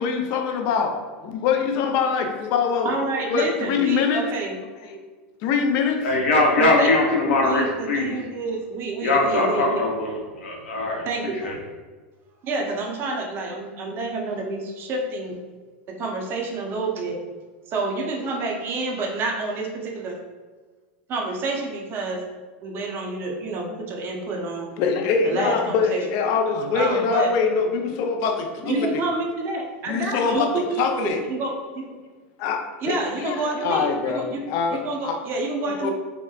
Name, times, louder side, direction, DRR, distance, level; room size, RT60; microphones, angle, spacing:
voice 1, 0.0-3.0 3.3-4.2 4.8-5.0 5.4-6.0 6.6-7.3 24.8-29.0 29.9-31.3 32.4-35.2 35.7-35.9, left 5 dB, 50° left, 4 dB, 0.4 m, -24 dB
voice 2, 2.8-4.6 6.6-6.9 7.4-9.8 11.0-11.6 12.4-15.4 16.0-17.2 17.7-20.2 21.1-22.2 22.6-24.7 25.2-26.0 26.8-27.3 28.6-31.9 32.8-34.5 34.7-35.9, right 3 dB, 35° right, 1 dB, 0.5 m, -28 dB
voice 3, 6.0-8.2 9.0-11.0 11.4-11.5, left 2 dB, 85° left, -1 dB, 0.7 m, -21 dB
2.7 x 2.1 x 2.3 m, 1.4 s
supercardioid pair, 125°, 6 cm